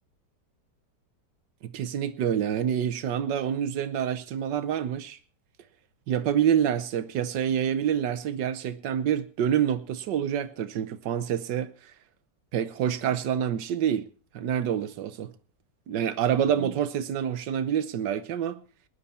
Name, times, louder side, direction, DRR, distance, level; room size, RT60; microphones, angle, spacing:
voice 1, 1.6-5.2 6.1-11.7 12.5-14.1 14.3-15.3 15.9-18.6, right 9 dB, 85° right, 1.6 m, -27 dB
19.5 x 11.0 x 4.2 m
omnidirectional pair, 1.9 m